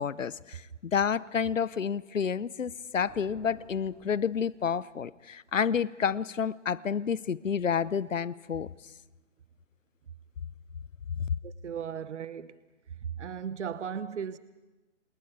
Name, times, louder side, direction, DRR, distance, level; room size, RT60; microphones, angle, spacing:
voice 1, 0.0-8.7, left 7 dB, 90° left, 0.8 m, -30 dB
sound 1, 3.0-5.0, right 2 dB, 25° right, 6.2 m, -55 dB
voice 2, 11.4-12.6 13.0-14.4, right 7 dB, 65° right, 1.1 m, -36 dB
28.0 x 27.5 x 4.8 m
hypercardioid pair, 145°, 37 cm